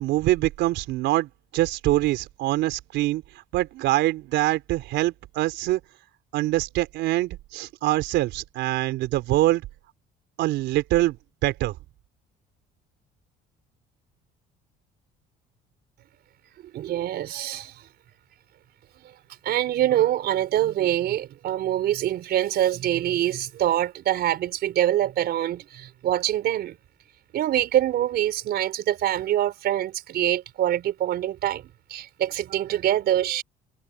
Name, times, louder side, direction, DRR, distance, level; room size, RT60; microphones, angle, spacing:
voice 1, 0.0-3.2 3.5-5.8 6.3-9.6 10.4-11.2 11.4-11.7, right 16 dB, 80° right, 4.3 m, -24 dB
voice 2, 16.7-17.8 19.4-26.8 27.3-33.4, right 12 dB, 60° right, 4.1 m, -25 dB
cardioid pair, 120°, 18 cm